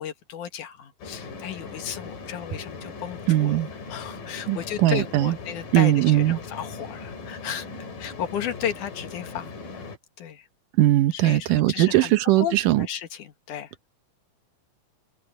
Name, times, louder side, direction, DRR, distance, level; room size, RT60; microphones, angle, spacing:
voice 1, 0.0-3.6 3.9-7.7 8.0-9.5 10.2-10.5 11.1-12.1 12.4-13.7, left 9 dB, 70° left, 3.0 m, -34 dB
sound 1, 1.0-10.0, left 4 dB, 90° left, 6.1 m, -39 dB
voice 2, 3.3-3.7 4.5-5.3 5.7-6.4 10.8-12.9, right 15 dB, 80° right, 2.5 m, -20 dB
open air
omnidirectional pair, 3.8 m